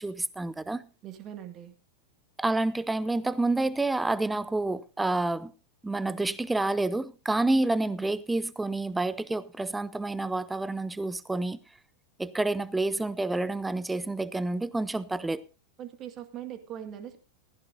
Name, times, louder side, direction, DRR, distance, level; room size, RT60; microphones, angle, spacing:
voice 1, 0.0-0.8 2.4-5.5 5.8-11.6 12.2-15.4, right 2 dB, 5° right, 0.6 m, -28 dB
voice 2, 1.0-1.7 15.8-17.2, right 10 dB, 30° right, 2.0 m, -41 dB
15.5 x 15.0 x 2.6 m
figure-of-eight pair, 90°, 0 cm